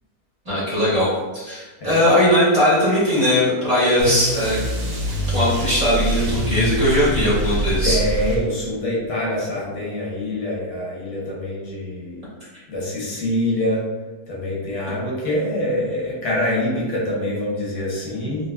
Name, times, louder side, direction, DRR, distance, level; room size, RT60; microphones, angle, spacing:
voice 1, 0.4-1.1 1.3-4.6 5.3-8.0, left 1 dB, 25° right, -10 dB, 1.0 m, -19 dB
voice 2, 1.8-2.1 7.8-12.2 12.7-13.8 14.3-18.5, left 1 dB, 80° left, -5 dB, 1.5 m, -25 dB
sound 1, 4.0-8.8, right 1 dB, 75° right, 1.3 m, -24 dB
4.0 x 2.4 x 2.2 m, 1.2 s
omnidirectional pair, 1.7 m